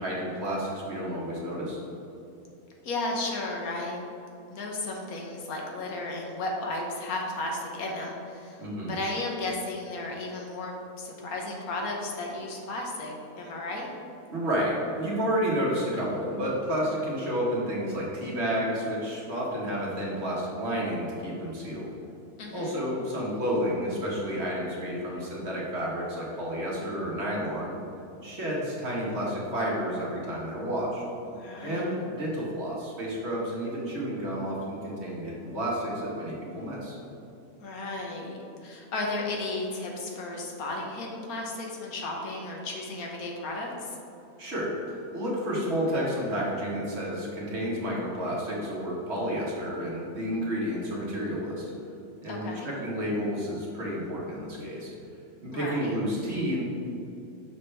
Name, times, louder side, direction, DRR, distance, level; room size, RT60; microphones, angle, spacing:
voice 1, 0.0-1.8 8.6-8.9 14.3-21.9 22.5-27.8 28.2-31.0 31.6-37.0 44.4-51.6 52.2-54.9 55.4-56.6, equal, 50° right, -5 dB, 1.7 m, -30 dB
voice 2, 2.8-4.1 4.5-13.9 22.4-22.8 31.3-31.9 37.6-44.0 52.3-52.7 55.5-56.0, left 2 dB, 85° left, 0 dB, 1.5 m, -34 dB
6.5 x 6.1 x 3.3 m, 2.7 s
omnidirectional pair, 1.5 m